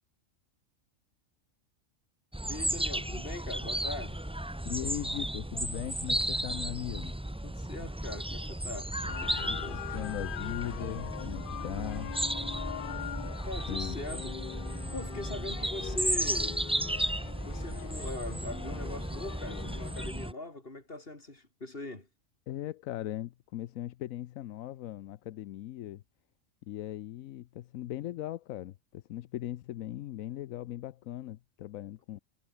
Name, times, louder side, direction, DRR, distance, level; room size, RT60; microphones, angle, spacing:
sound 1, 2.3-20.3, right 1 dB, 5° right, 0.7 m, -34 dB
voice 1, 2.5-4.2 7.4-9.8 13.4-14.4 14.9-16.6 17.4-22.1, left 2 dB, 45° left, 4.1 m, -41 dB
voice 2, 4.6-7.1 9.4-12.1 13.7-14.0 22.5-26.0 26.7-32.2, left 13 dB, 90° left, 1.1 m, -39 dB
sound 2, 9.1-20.1, left 11 dB, 60° left, 0.5 m, -42 dB
omnidirectional pair, 1.4 m